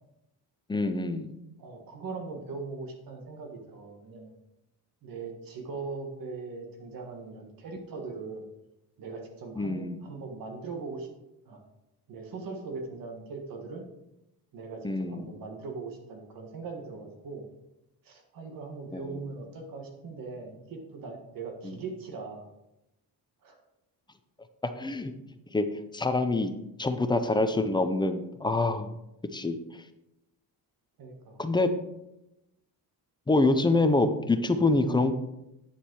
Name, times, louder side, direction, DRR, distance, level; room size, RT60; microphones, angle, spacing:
voice 1, 0.7-1.3 9.6-10.0 14.8-15.3 18.9-19.2 21.6-21.7 24.6-25.1 25.5-25.7 25.9-26.5 26.8-28.9 29.3-29.6 31.4-31.7 33.3-35.1, left 2 dB, 10° left, 8 dB, 0.5 m, -26 dB
voice 2, 1.6-4.3 5.0-8.4 9.0-11.1 11.4-11.6 12.1-13.9 14.5-17.4 18.0-22.5 23.4-23.6 31.0-31.4, right 4 dB, 60° right, 2 dB, 1.6 m, -40 dB
9.2 x 7.1 x 4.6 m, 0.88 s
cardioid pair, 175°, 39 cm